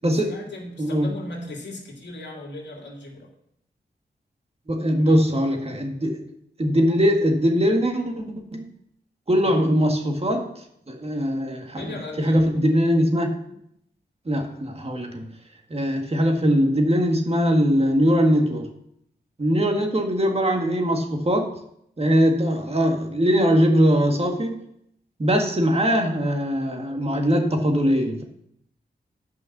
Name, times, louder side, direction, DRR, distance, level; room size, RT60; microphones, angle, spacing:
voice 1, 0.1-3.3 5.0-5.4 9.4-9.9 11.8-12.5 13.5-13.6, left 1 dB, 85° left, -1 dB, 2.7 m, -37 dB
voice 2, 4.7-6.2 6.6-8.2 8.5-8.7 9.3-10.5 10.9-11.9 12.2-13.4 14.3-15.3 15.7-18.7 19.4-21.5 22.0-24.6 25.2-28.2, equal, 35° right, 3 dB, 1.8 m, -21 dB
10.5 x 5.6 x 6.7 m, 0.72 s
wide cardioid pair, 80°, 18 cm